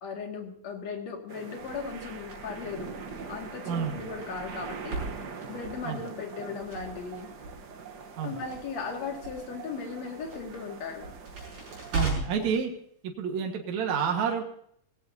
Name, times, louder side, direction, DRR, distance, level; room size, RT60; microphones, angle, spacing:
voice 1, 0.0-2.9 3.3-5.0 5.5-7.3 8.2-11.1, left 5 dB, 55° left, 2 dB, 3.3 m, -37 dB
sound 1, 1.3-12.1, right 5 dB, 90° right, 0.9 m, -43 dB
Crackle, 1.6-12.5, right 3 dB, 45° right, 8.1 m, -40 dB
voice 2, 3.7-4.0 5.8-6.0 8.2-8.3 11.9-12.7 13.0-14.4, right 6 dB, 60° right, 3 dB, 2.8 m, -29 dB
18.0 x 17.5 x 2.8 m, 0.68 s
omnidirectional pair, 3.8 m